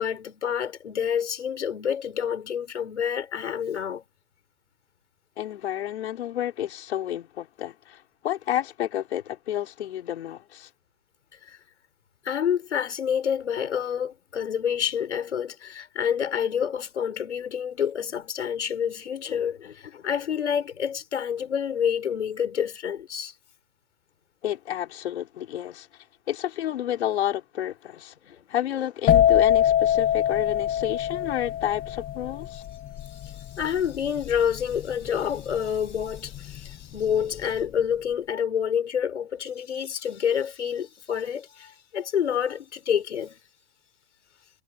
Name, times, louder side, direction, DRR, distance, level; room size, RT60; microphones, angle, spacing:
voice 1, 0.0-4.0 11.4-11.6 12.2-23.3 28.3-28.4 33.1-43.4, left 8 dB, 90° left, 5.0 m, -28 dB
voice 2, 5.4-10.7 24.4-25.9 26.3-28.1 28.5-32.6, left 11 dB, 70° left, 5.4 m, -30 dB
sound 1, 29.1-36.6 36.9-37.4, left 10 dB, 25° left, 2.1 m, -23 dB
hypercardioid pair, 135°, 34 cm